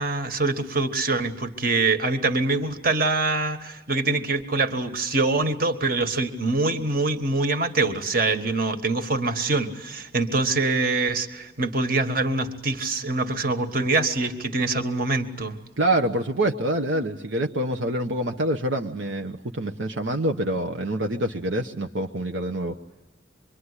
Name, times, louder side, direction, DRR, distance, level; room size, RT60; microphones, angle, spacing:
voice 1, 0.0-15.6, right 3 dB, 50° right, 8 dB, 1.7 m, -24 dB
voice 2, 15.8-22.8, right 1 dB, 75° right, 3 dB, 1.0 m, -26 dB
26.0 x 23.5 x 9.9 m, 0.98 s
head